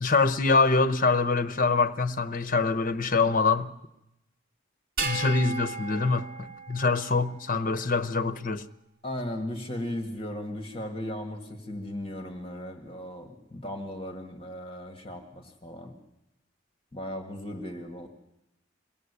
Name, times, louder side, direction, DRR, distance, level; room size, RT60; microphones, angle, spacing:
voice 1, 0.0-3.7 5.0-8.6, left 4 dB, 45° left, 0.9 m, -25 dB
sound 1, 5.0-7.5, right 4 dB, 50° right, 2.5 m, -35 dB
voice 2, 9.0-16.0 16.9-18.1, left 1 dB, 30° left, 1.8 m, -36 dB
22.5 x 17.0 x 8.2 m
head